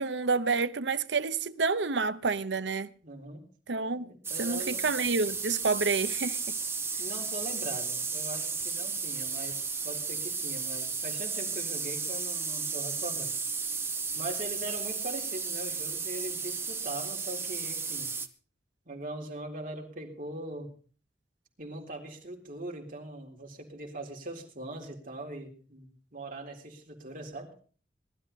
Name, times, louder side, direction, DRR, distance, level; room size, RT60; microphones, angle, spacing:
voice 1, 0.0-2.9 3.7-4.1 4.4-6.6, right 4 dB, 90° right, 0.8 m, -29 dB
voice 2, 3.0-3.4 4.0-4.8 7.0-13.3 14.2-18.1 18.9-20.7 21.6-27.5, right 1 dB, 50° right, 3.8 m, -41 dB
sound 1, 4.2-18.3, right 5 dB, 15° right, 1.0 m, -34 dB
19.5 x 12.5 x 4.1 m
head